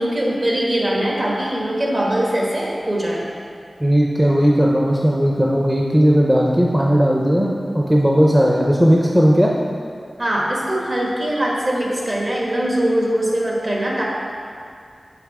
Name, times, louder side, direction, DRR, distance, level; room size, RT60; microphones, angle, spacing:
voice 1, 0.0-3.3 10.2-14.0, right 1 dB, 45° right, -3 dB, 1.5 m, -21 dB
voice 2, 3.8-9.5, equal, 10° right, -2 dB, 0.6 m, -16 dB
6.4 x 5.8 x 4.7 m, 2.3 s
wide cardioid pair, 85°, 0 cm